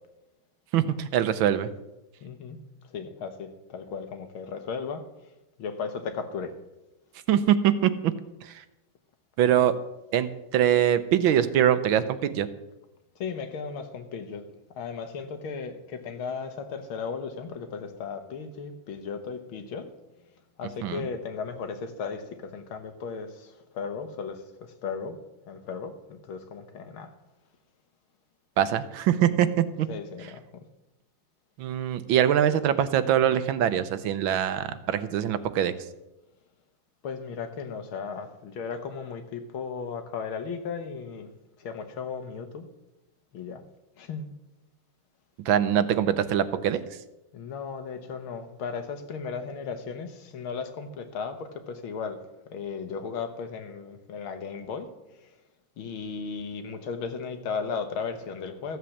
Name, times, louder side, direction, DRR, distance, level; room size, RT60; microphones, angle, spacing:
voice 1, 0.7-1.7 7.3-7.9 8.4-8.6 9.4-9.7 10.1-12.5 20.8-21.1 28.6-29.9 31.6-35.7 45.4-46.8, right 10 dB, 75° right, 12 dB, 1.5 m, -23 dB
voice 2, 2.2-2.6 2.9-5.0 5.6-6.5 13.2-14.4 14.8-19.9 20.6-24.4 24.8-25.2 25.5-27.1 29.9-30.6 37.0-41.3 41.6-42.7 43.3-43.6 44.0-44.3 47.3-52.2 52.5-54.9 55.2-55.3 55.8-58.8, left 5 dB, 80° left, 7 dB, 2.1 m, -35 dB
14.5 x 7.7 x 7.2 m, 0.96 s
omnidirectional pair, 2.3 m